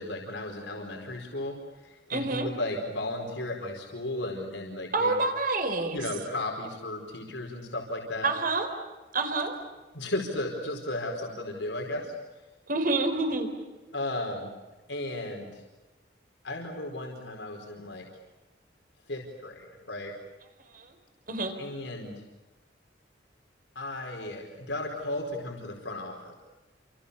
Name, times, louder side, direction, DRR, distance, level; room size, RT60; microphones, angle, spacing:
voice 1, 0.0-5.1 5.9-8.3 9.9-12.1 13.9-14.5 14.9-15.6 16.4-18.1 19.1-20.1 21.6-22.2 23.7-26.3, left 1 dB, 75° left, 1 dB, 4.8 m, -35 dB
voice 2, 2.1-2.5 4.9-6.0 8.2-8.7 9.1-9.5 12.7-13.5 20.7-20.8 21.3-21.5, right 3 dB, 50° right, 7 dB, 4.3 m, -27 dB
30.0 x 27.5 x 7.1 m, 1.2 s
head